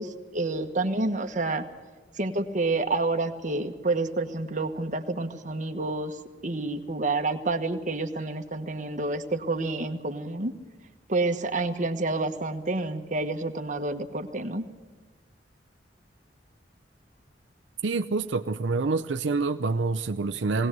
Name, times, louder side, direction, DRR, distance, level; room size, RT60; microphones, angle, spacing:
voice 1, 0.0-1.6 2.2-6.2 6.4-10.5 11.1-14.6, right 2 dB, 45° right, 5 dB, 1.4 m, -29 dB
voice 2, 17.8-20.7, right 3 dB, 90° right, 9 dB, 0.6 m, -27 dB
20.0 x 18.0 x 7.9 m, 1.3 s
head